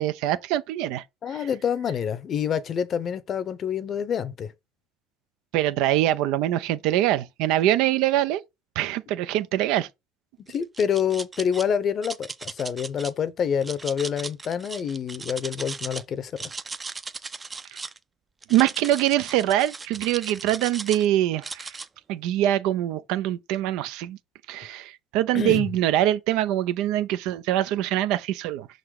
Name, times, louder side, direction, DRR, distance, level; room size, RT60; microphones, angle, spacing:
voice 1, 0.0-1.0 1.3-1.5 5.5-8.4 8.8-9.9 17.7-17.8 18.5-21.8 22.1-24.2 24.5-28.7, right 13 dB, 70° right, 0.6 m, -24 dB
voice 2, 1.2-4.5 10.4-16.3 25.3-25.7, left 8 dB, 45° left, 0.8 m, -27 dB
sound 1, 10.5-11.6 12.0-13.1 13.6-16.0 16.3-18.0 18.4-21.1 21.4-21.9, right 4 dB, 20° right, 0.5 m, -37 dB
5.7 x 3.9 x 4.8 m
supercardioid pair, 100°, 0 cm